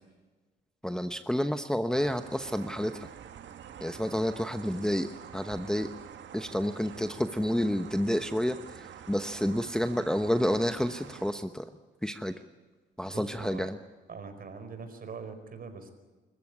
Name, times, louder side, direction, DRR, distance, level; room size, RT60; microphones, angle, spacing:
voice 1, 0.8-3.1 3.8-5.9 6.3-11.7 12.0-12.3 13.0-13.8, equal, 5° left, 8 dB, 1.0 m, -30 dB
sound 1, 1.9-11.3, right 9 dB, 65° right, 1.7 m, -47 dB
voice 2, 13.0-13.7 14.1-15.9, right 5 dB, 45° right, 8 dB, 4.8 m, -42 dB
25.5 x 15.0 x 9.7 m, 1.3 s
cardioid pair, 90°, 20 cm